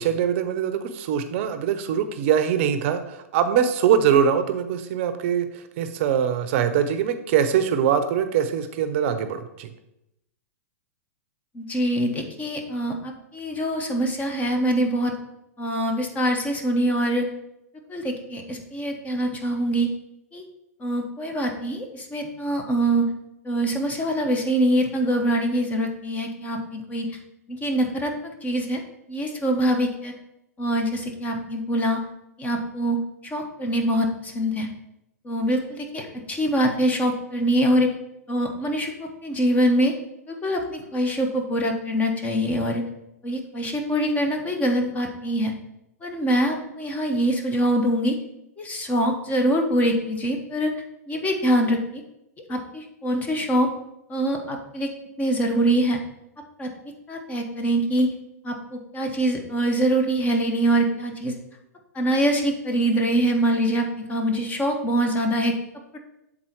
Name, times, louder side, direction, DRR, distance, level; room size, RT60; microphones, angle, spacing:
voice 1, 0.0-9.7, right 8 dB, 55° right, 9 dB, 0.6 m, -23 dB
voice 2, 11.5-15.1 15.6-17.3 17.9-19.9 20.3-20.4 20.8-23.0 23.4-27.1 27.5-28.8 29.1-30.1 30.6-32.0 32.4-33.0 33.2-34.7 35.2-37.9 38.3-39.9 40.3-42.8 43.2-45.5 46.0-48.2 48.6-50.7 51.1-52.0 52.5-53.7 54.1-54.9 55.2-56.0 56.6-56.7 57.1-58.1 58.4-61.3 61.9-65.5 65.9-66.0, right 1 dB, 20° left, 3 dB, 1.1 m, -24 dB
7.5 x 3.9 x 4.5 m, 0.86 s
hypercardioid pair, 120°, 8 cm